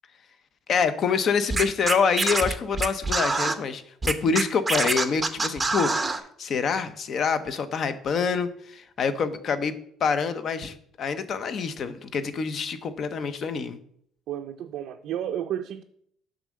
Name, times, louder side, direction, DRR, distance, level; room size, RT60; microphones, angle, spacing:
voice 1, 0.7-5.9 6.4-9.7 10.0-13.8, left 5 dB, 45° left, 11 dB, 0.7 m, -26 dB
Scratching (performance technique), 1.5-3.5 4.0-6.2, right 3 dB, 15° right, 0.6 m, -25 dB
voice 2, 14.3-15.8, right 10 dB, 60° right, 5 dB, 0.4 m, -32 dB
6.8 x 3.7 x 6.4 m, 0.67 s
cardioid pair, 135°, 0 cm